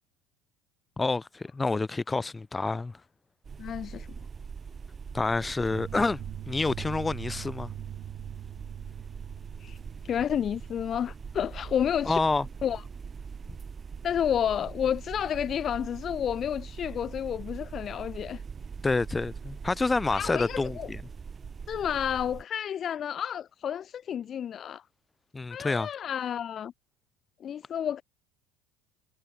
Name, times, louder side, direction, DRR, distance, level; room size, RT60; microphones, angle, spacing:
voice 1, 1.0-3.0 5.1-7.7 12.1-12.5 18.8-21.0 25.3-25.9, left 3 dB, 15° left, 2.1 m, -28 dB
sound 1, 3.4-22.4, right 6 dB, 25° right, 3.9 m, -42 dB
voice 2, 3.6-4.1 9.6-9.8 10.0-12.2 12.6-12.8 14.0-18.4 20.1-20.9 21.7-24.8 25.5-26.7 27.4-28.0, left 9 dB, 40° left, 1.1 m, -30 dB
sound 2, 5.7-10.7, right 12 dB, 50° right, 6.8 m, -42 dB
supercardioid pair, 105°, 0 cm